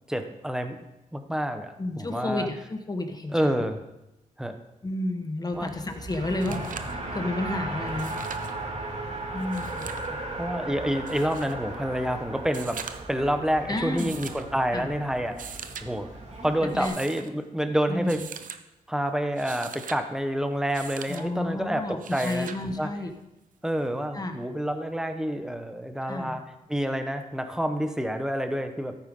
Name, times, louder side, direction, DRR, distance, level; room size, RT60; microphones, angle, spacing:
voice 1, 0.1-0.8 1.1-2.5 3.3-3.8 4.4-4.6 5.5-5.7 10.1-12.8 13.1-15.5 15.8-16.1 16.4-18.2 18.9-22.5 22.8-22.9 23.6-26.4 26.7-29.0, equal, 5° right, 7 dB, 1.2 m, -28 dB
voice 2, 1.8-3.5 4.8-8.2 9.3-9.8 13.7-14.1 14.7-14.9 16.7-16.9 17.9-18.2 21.1-23.1 24.1-24.4 26.0-26.4, left 2 dB, 25° left, 5 dB, 1.5 m, -31 dB
Race car auto racing, 5.5-16.9, right 2 dB, 50° right, 2.4 m, -36 dB
sound 1, 5.9-6.0 6.3-7.0 7.9-8.6 9.4-10.1 11.1-11.6 12.4-13.2 14.0-14.5 15.2-15.9 16.7-17.3 18.1-18.6 19.2-20.0 20.7-21.2 22.0-22.6 24.0-24.1, right 7 dB, 70° right, 0.8 m, -41 dB
13.5 x 8.8 x 3.8 m, 0.96 s
cardioid pair, 75°, 14 cm